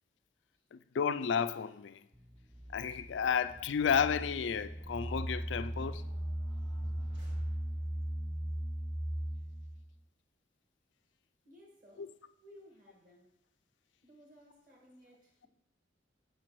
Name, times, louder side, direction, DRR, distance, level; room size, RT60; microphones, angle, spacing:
voice 1, 0.7-2.0 2.7-6.0 12.0-12.1, left 7 dB, 80° left, 0.4 m, -32 dB
sound 1, 2.1-10.0, right 1 dB, 5° right, 0.3 m, -38 dB
sound 2, 4.8-8.1, equal, 70° right, 2.8 m, -57 dB
voice 2, 11.4-13.3 14.0-15.5, equal, 45° right, 2.1 m, -59 dB
6.5 x 4.7 x 6.0 m
head